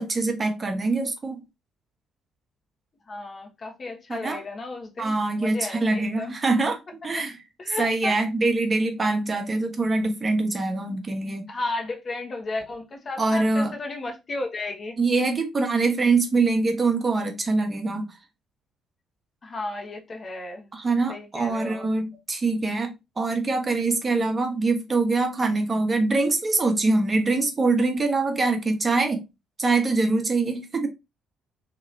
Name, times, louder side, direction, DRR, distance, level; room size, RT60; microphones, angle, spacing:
voice 1, 0.0-1.4 4.1-4.4 5.0-6.8 7.0-7.4 7.8-11.4 13.2-13.7 15.0-18.1 20.7-29.2 29.6-30.9, right 3 dB, 35° right, 0.8 m, -24 dB
voice 2, 3.1-6.3 7.6-8.2 11.5-14.9 19.4-20.7 21.1-21.9, left 2 dB, 40° left, 0.9 m, -33 dB
2.9 x 2.9 x 2.4 m
hypercardioid pair, 50°, 0 cm